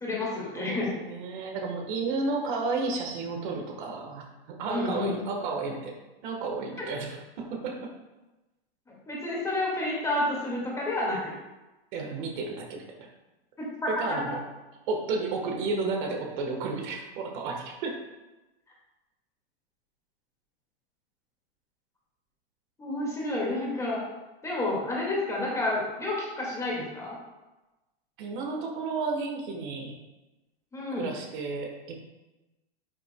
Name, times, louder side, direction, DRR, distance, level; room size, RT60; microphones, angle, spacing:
voice 1, 0.0-0.9 4.7-5.2 6.8-6.9 8.9-11.3 13.6-14.4 22.8-24.0 24.4-27.2 30.7-31.1, left 2 dB, 10° left, -4 dB, 1.9 m, -30 dB
voice 2, 0.6-5.9 6.2-7.9 11.9-13.1 13.9-14.4 14.9-18.0 28.2-30.0 31.0-31.9, right 3 dB, 50° right, 2 dB, 1.3 m, -32 dB
10.5 x 5.8 x 2.2 m, 1.1 s
supercardioid pair, 145°, 31 cm